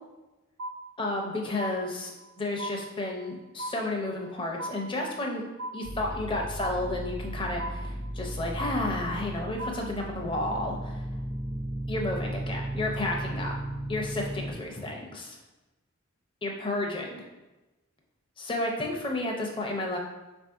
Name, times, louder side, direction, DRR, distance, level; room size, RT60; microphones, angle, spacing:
sound 1, 0.6-1.3 1.6-2.3 2.6-3.3 3.6-4.3 4.6-5.3 5.6-6.3 6.6-7.3 7.6-8.3 8.6-9.3 9.6-10.3, right 1 dB, 75° right, 0.7 m, -39 dB
voice 1, 1.0-2.1 2.4-5.4 5.7-11.0 11.9-13.5 13.9-15.4 16.4-17.2 18.4-20.0, left 2 dB, 25° left, 0 dB, 0.6 m, -32 dB
sound 2, 5.8-14.5, right 1 dB, 25° right, 0.4 m, -35 dB
4.0 x 2.6 x 4.5 m, 1.1 s
head